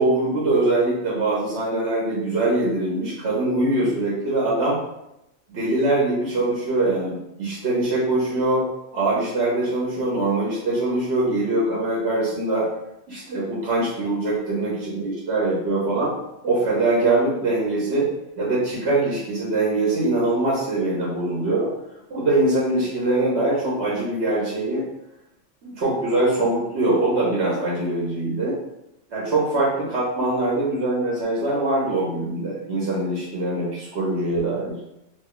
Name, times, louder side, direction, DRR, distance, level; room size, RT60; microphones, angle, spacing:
voice 1, 0.0-4.8 5.5-8.7 8.9-12.7 13.1-16.1 16.4-18.1 18.4-21.7 22.1-24.8 25.6-28.6 29.1-34.8, right 2 dB, 65° right, -6 dB, 1.1 m, -23 dB
2.8 x 2.2 x 3.6 m, 0.85 s
omnidirectional pair, 1.3 m